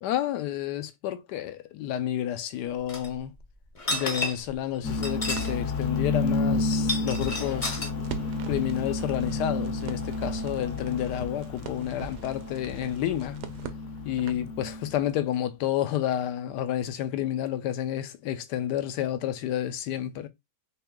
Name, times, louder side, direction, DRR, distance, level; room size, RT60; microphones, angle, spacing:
voice 1, 0.0-3.3 3.9-7.8 8.5-13.4 14.0-20.3, left 11 dB, 80° left, 1.2 m, -30 dB
sound 1, 2.9-3.1 3.7-4.5 4.9-5.6 5.8-5.9 6.7-7.9, left 2 dB, 35° left, 0.5 m, -31 dB
sound 2, 4.8-15.1, left 3 dB, 60° left, 0.9 m, -31 dB
Crackle, 5.3-14.5, right 9 dB, 75° right, 1.1 m, -44 dB
3.0 x 3.0 x 3.6 m
omnidirectional pair, 1.8 m